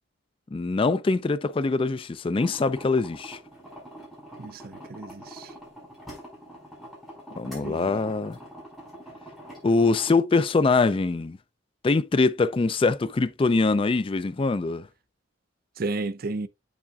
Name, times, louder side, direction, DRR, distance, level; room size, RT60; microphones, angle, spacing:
voice 1, 0.5-3.4 7.3-8.4 9.6-11.4 11.8-14.9, left 3 dB, 25° left, 0.3 m, -23 dB
sound 1, 2.4-10.1, equal, ahead, 4.9 m, -45 dB
voice 2, 4.4-5.5 7.4-8.0 15.8-16.5, right 3 dB, 50° right, 0.5 m, -33 dB
8.4 x 7.2 x 2.4 m
head